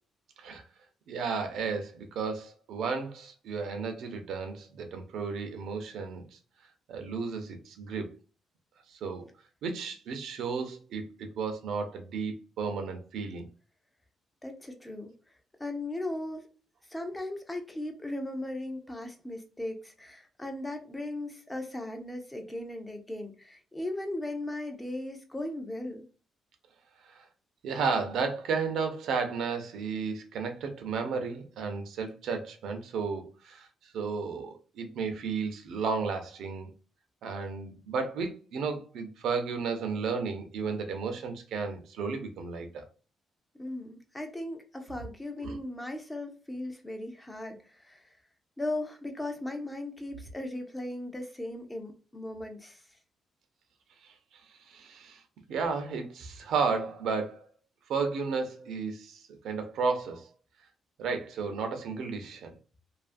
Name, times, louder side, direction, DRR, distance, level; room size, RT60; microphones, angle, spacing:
voice 1, 1.1-6.4 6.9-8.1 8.9-9.3 9.6-13.5 27.0-27.2 27.6-36.7 37.2-42.9 45.4-45.6 54.7-55.2 55.5-57.4 57.9-60.3 61.0-62.5, right 5 dB, 70° right, 0.5 m, -33 dB
voice 2, 14.4-15.1 15.6-16.5 16.9-26.1 43.6-48.2 48.6-53.0, left 1 dB, 10° left, 0.4 m, -37 dB
2.7 x 2.4 x 2.4 m
cardioid pair, 155°, 0 cm